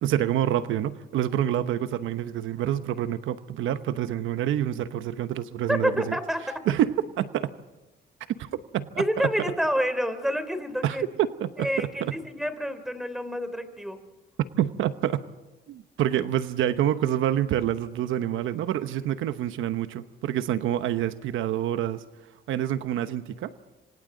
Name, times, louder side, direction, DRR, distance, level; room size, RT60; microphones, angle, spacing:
voice 1, 0.0-6.2 6.7-7.5 8.4-9.0 10.8-11.9 14.6-15.2 15.7-22.0 22.5-23.5, right 11 dB, 85° right, 11 dB, 1.0 m, -27 dB
voice 2, 5.7-6.6 9.0-11.1 11.6-14.0, equal, ahead, 10 dB, 3.3 m, -28 dB
27.5 x 25.5 x 3.9 m, 1.1 s
cardioid pair, 90°, 20 cm